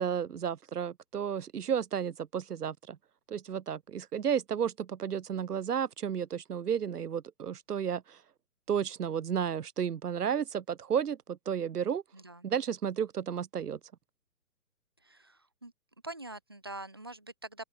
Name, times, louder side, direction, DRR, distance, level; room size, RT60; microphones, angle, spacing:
voice 1, 0.0-3.0 3.3-8.2 8.7-12.0 12.4-13.8, right 8 dB, 90° right, 1.1 m, -32 dB
voice 2, 12.1-12.5 15.0-15.7 16.0-17.6, right 2 dB, 20° right, 0.4 m, -44 dB
open air
hypercardioid pair, 150°, 45 cm